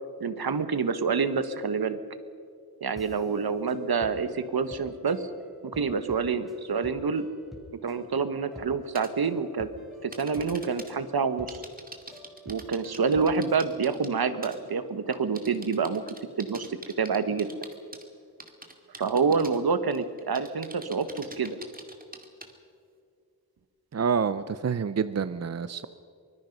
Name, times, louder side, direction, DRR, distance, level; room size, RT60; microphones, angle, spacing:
voice 1, 0.2-2.0 2.8-5.3 5.6-7.3 7.8-9.7 10.0-11.6 12.4-16.0 16.4-17.5 19.0-21.6, right 5 dB, 65° right, 11 dB, 1.4 m, -27 dB
sound 1, 3.0-13.7, equal, ahead, 3.6 m, -50 dB
sound 2, 8.9-9.1 10.1-10.9 11.5-14.1 14.4-14.7 15.1-18.0 18.4-19.6 19.9-22.5, right 2 dB, 20° right, 2.2 m, -44 dB
voice 2, 23.9-25.9, right 6 dB, 40° right, 13 dB, 0.6 m, -27 dB
24.5 x 20.5 x 5.4 m, 2.3 s
wide cardioid pair, 90°, 39 cm